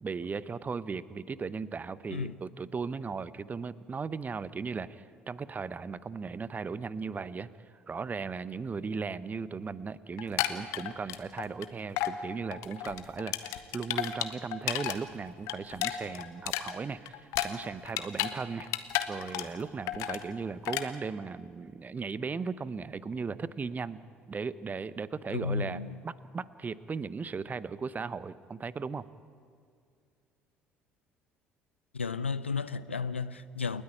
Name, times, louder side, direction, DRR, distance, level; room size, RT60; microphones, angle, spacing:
voice 1, 0.0-7.5 7.9-18.7 19.1-24.0 24.3-29.1, right 5 dB, 25° right, 0.8 m, -37 dB
sound 1, 10.2-11.7 12.0-12.2 12.5-15.0 15.3-18.3 18.6-19.6 19.9-20.2 20.7-20.9, left 14 dB, 60° left, 1.1 m, -32 dB
voice 2, 25.3-26.0 31.9-33.8, left 5 dB, 85° left, 0.5 m, -33 dB
29.0 x 10.0 x 9.7 m
figure-of-eight pair, 55°, 6 cm